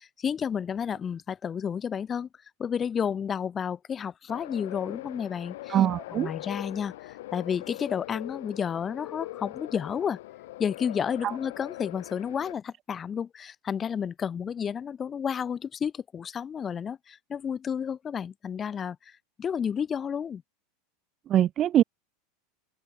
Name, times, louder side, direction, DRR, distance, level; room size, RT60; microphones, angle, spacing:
voice 1, 0.0-2.3 2.6-5.8 6.1-10.2 10.6-19.0 19.4-20.4, left 7 dB, 25° left, 5.8 m, -31 dB
sound 1, 4.3-12.5, left 17 dB, 75° left, 5.1 m, -41 dB
voice 2, 5.7-6.3 11.2-11.3 21.3-21.8, right 11 dB, 40° right, 0.9 m, -22 dB
open air
supercardioid pair, 110°, 0 cm